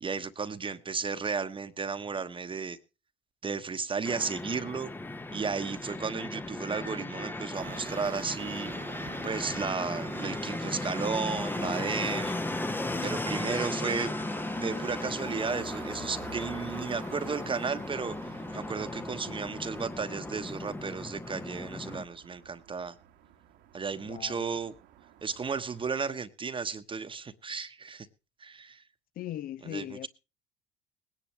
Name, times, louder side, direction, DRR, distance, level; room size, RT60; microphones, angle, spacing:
voice 1, 0.0-2.8 3.4-4.9 5.3-8.7 9.2-12.4 13.0-14.1 14.6-22.9 23.7-24.7 25.2-28.1 28.4-28.8 29.6-30.1, right 5 dB, 25° right, 1.1 m, -34 dB
Fixed-wing aircraft airplane, 4.0-22.0, left 2 dB, 10° left, 0.8 m, -36 dB
sound 1, 7.5-26.0, right 11 dB, 65° right, 1.5 m, -49 dB
voice 2, 24.0-24.6 29.2-30.1, left 12 dB, 50° left, 0.6 m, -39 dB
20.5 x 10.5 x 3.1 m
supercardioid pair, 80°, 19 cm